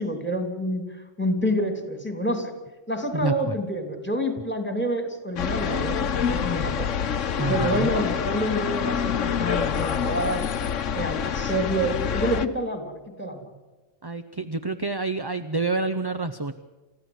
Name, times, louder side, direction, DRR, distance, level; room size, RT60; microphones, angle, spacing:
voice 1, 0.0-2.5 2.9-6.9 7.5-10.4 10.9-13.4, equal, 10° left, 6 dB, 3.2 m, -28 dB
voice 2, 3.1-3.6 7.4-7.9 14.0-16.5, right 3 dB, 25° right, 9 dB, 0.6 m, -28 dB
sound 1, 5.4-12.5, left 7 dB, 70° left, 1.3 m, -26 dB
29.5 x 14.5 x 8.0 m, 1.2 s
omnidirectional pair, 1.3 m